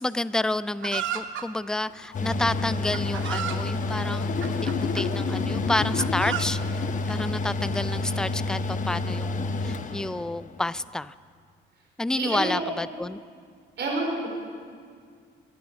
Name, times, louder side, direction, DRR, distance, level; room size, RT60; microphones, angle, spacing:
voice 1, 0.0-4.3 4.6-6.8 7.1-11.1 12.0-13.2, left 2 dB, 5° left, 16 dB, 0.3 m, -29 dB
Chicken rooster, 0.8-1.5 2.4-2.5 2.9-3.6 4.4-5.1 5.7-6.4, right 10 dB, 80° right, 0.9 m, -32 dB
sound 1, 1.8-7.1, left 6 dB, 60° left, 1.2 m, -34 dB
Mechanical fan, 2.1-10.6, left 2 dB, 40° left, 0.9 m, -29 dB
voice 2, 12.2-12.5 13.8-14.3, right 3 dB, 60° right, -1 dB, 4.4 m, -28 dB
21.5 x 8.8 x 6.3 m, 2.1 s
cardioid pair, 90°, 20 cm